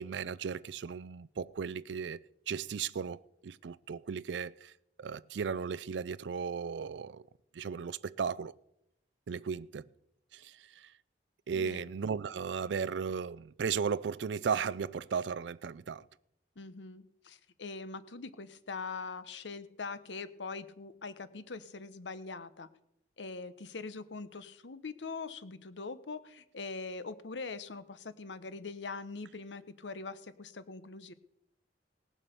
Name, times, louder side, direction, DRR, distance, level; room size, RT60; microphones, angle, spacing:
voice 1, 0.0-2.2 2.5-4.7 5.0-7.2 7.6-8.5 9.3-9.9 10.3-10.5 10.8-10.9 11.5-16.0, right 6 dB, 80° right, 0.4 m, -35 dB
voice 2, 11.5-11.8 16.6-22.7 23.2-31.1, left 4 dB, 90° left, 0.9 m, -42 dB
18.0 x 7.4 x 6.8 m
head